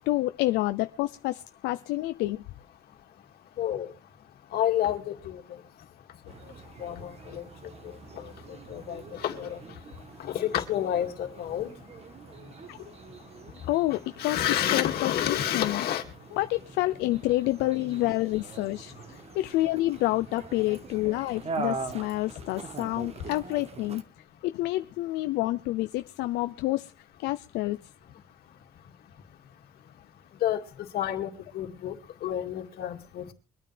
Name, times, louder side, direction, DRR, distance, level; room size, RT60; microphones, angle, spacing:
voice 1, 0.1-2.4 12.7-12.8 13.7-14.4 14.7-15.8 16.4-24.0 24.4-26.9 27.2-27.8, left 17 dB, 90° left, 0.5 m, -28 dB
voice 2, 3.6-3.9 4.5-5.4 6.8-7.4 8.7-9.6 10.2-11.7 14.2-16.0 30.4-30.6 30.9-31.3 31.5-31.9 32.2-33.3, left 11 dB, 65° left, 2.3 m, -29 dB
sound 1, 6.3-24.0, right 4 dB, 40° right, 1.4 m, -43 dB
24.0 x 9.2 x 3.4 m
cardioid pair, 110°, 17 cm